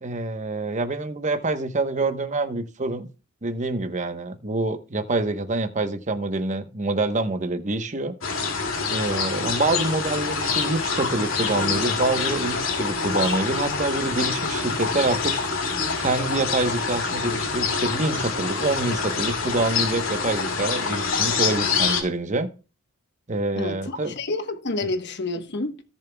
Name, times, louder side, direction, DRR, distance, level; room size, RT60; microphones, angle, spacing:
voice 1, 0.0-3.1 3.4-8.1 8.9-15.4 16.0-22.5 23.3-24.1 24.8-24.9, right 2 dB, 35° right, 1.0 m, -26 dB
sound 1, 8.2-22.0, left 5 dB, 85° left, 2.5 m, -26 dB
voice 2, 23.6-25.8, left 2 dB, 60° left, 1.2 m, -29 dB
17.5 x 7.0 x 2.3 m
head